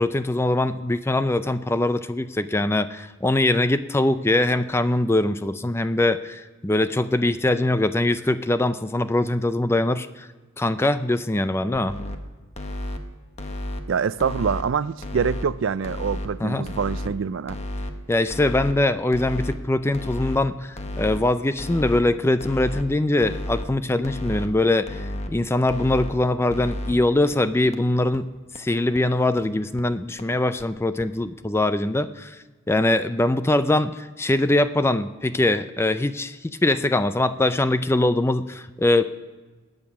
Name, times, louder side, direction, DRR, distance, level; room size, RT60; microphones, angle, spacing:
voice 1, 0.0-10.3 10.6-12.0 16.4-16.6 18.1-28.3 28.6-32.4 32.7-39.0, left 2 dB, 10° left, 0.4 m, -22 dB
sound 1, 11.7-12.2 12.6-13.0 13.4-13.8 14.2-14.6 15.0-15.4 15.8-16.3 16.7-17.1 17.5-17.9 18.3-18.7 19.1-19.5 19.9-20.4 20.8-21.2 21.6-22.0 22.4-22.8 23.2-23.7 24.0-24.5 24.9-25.3 25.7-26.1 26.5-26.9 27.3-27.4 27.7-27.8 28.1-28.2 28.6-28.7 28.9-29.0 29.4-29.5 29.8-29.9 30.2-30.3 30.6-30.7 31.0-31.1, left 1 dB, 30° left, 1.1 m, -31 dB
voice 2, 13.9-17.6, right 6 dB, 65° right, 0.4 m, -25 dB
21.0 x 8.8 x 6.1 m
head